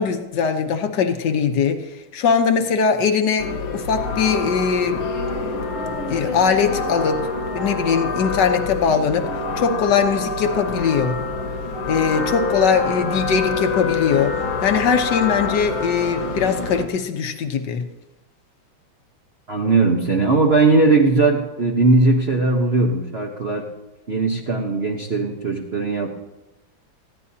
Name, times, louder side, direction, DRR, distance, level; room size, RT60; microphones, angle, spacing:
voice 1, 0.0-1.8 2.1-5.0 6.1-7.3 7.5-9.3 9.6-11.2 11.9-17.8, left 6 dB, 60° left, 6 dB, 1.5 m, -21 dB
sound 1, 3.4-16.9, left 3 dB, 80° left, 2.4 m, -26 dB
voice 2, 19.5-23.6 24.1-26.1, right 3 dB, 40° right, 0 dB, 1.0 m, -18 dB
20.0 x 15.0 x 2.8 m, 1.0 s
omnidirectional pair, 2.3 m